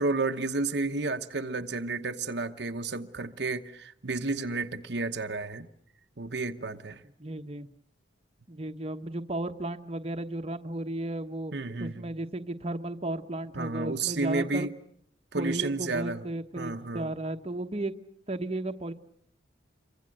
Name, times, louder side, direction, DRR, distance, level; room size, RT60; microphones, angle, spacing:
voice 1, 0.0-5.7 6.2-7.0 11.5-12.0 13.5-14.7 15.3-16.3 16.6-17.1, right 3 dB, 60° right, 1.0 m, -31 dB
voice 2, 7.2-7.7 8.5-11.5 11.8-14.7 15.3-17.9 18.3-18.9, right 1 dB, 30° right, 1.2 m, -34 dB
27.5 x 24.0 x 7.8 m
head